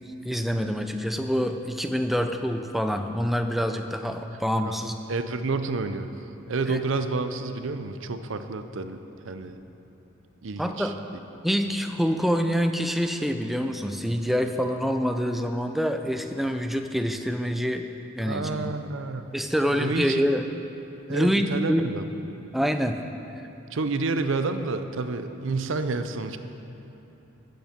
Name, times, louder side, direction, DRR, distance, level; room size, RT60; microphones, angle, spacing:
voice 1, 0.2-4.9 6.7-6.9 10.6-10.9 11.4-17.9 18.2-18.7 19.3-20.4 21.1-21.8 22.5-23.0, equal, ahead, 6 dB, 0.4 m, -26 dB
voice 2, 4.6-6.1 6.5-9.0 9.2-9.6 10.4-10.9 18.2-19.2 19.6-20.2 21.1-22.0 23.7-26.4, right 3 dB, 65° right, 9 dB, 0.6 m, -29 dB
14.0 x 8.0 x 5.1 m, 3.0 s
head